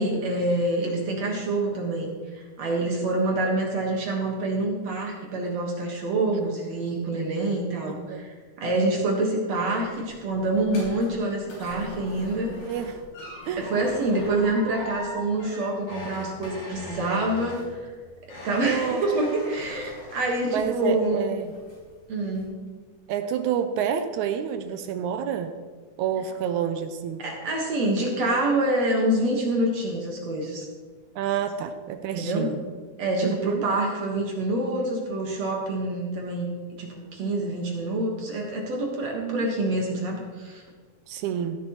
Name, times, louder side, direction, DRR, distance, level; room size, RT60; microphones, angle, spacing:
voice 1, 0.0-12.5 13.6-17.9 18.4-21.3 22.1-22.6 27.2-30.7 32.2-32.5 33.0-36.5 36.8-40.6, right 2 dB, 60° right, -1 dB, 2.6 m, -26 dB
voice 2, 7.9-8.2 12.6-13.0 13.5-13.7 18.5-19.0 20.5-21.5 23.1-25.5 26.0-27.2 31.2-32.6 33.2-33.7 39.1-39.5 41.1-41.6, right 8 dB, 80° right, 9 dB, 1.8 m, -29 dB
sound 1, 9.6-21.1 21.4-21.9 22.3-22.4, left 1 dB, 85° left, 5.4 m, -41 dB
16.0 x 10.5 x 3.1 m, 1.5 s
omnidirectional pair, 3.7 m